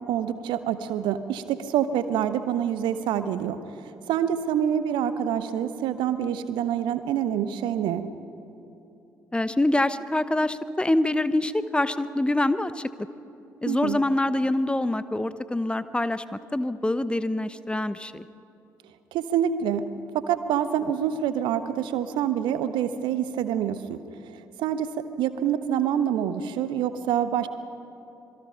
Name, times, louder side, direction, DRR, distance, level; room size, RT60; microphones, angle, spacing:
voice 1, 0.1-3.6 4.1-8.0 13.7-14.0 19.1-19.8 20.3-24.0 24.6-24.9 25.2-27.5, right 9 dB, 60° right, 11 dB, 1.2 m, -26 dB
voice 2, 9.3-12.9 13.6-18.3, left 1 dB, 10° left, 13 dB, 1.1 m, -25 dB
27.0 x 22.0 x 5.8 m, 2.9 s
figure-of-eight pair, 45°, 9 cm